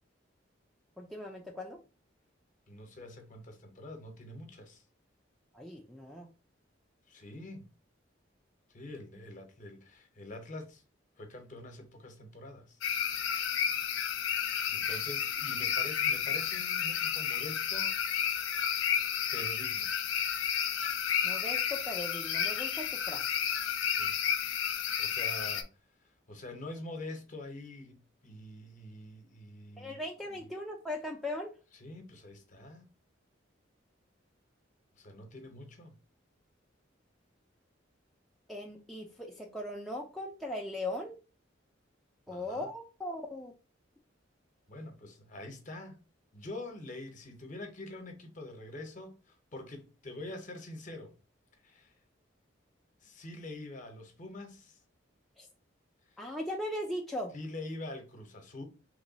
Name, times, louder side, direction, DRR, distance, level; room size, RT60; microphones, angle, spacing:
voice 1, 1.0-1.8 5.5-6.3 21.2-23.2 29.8-31.5 38.5-41.2 42.3-43.5 55.4-55.5 56.2-57.3, left 1 dB, ahead, 0.3 m, -39 dB
voice 2, 2.7-4.8 7.1-7.7 8.7-10.8 11.2-12.8 14.7-17.9 19.3-19.9 23.8-24.2 25.0-25.7 26.0-30.5 31.7-32.9 35.0-35.9 42.3-42.7 44.7-46.0 46.3-51.1 51.6-51.9 53.0-54.8 56.1-56.2 57.3-58.6, left 2 dB, 40° left, 0.7 m, -45 dB
sound 1, 12.8-25.6, left 8 dB, 85° left, 0.5 m, -31 dB
3.0 x 2.3 x 3.8 m
head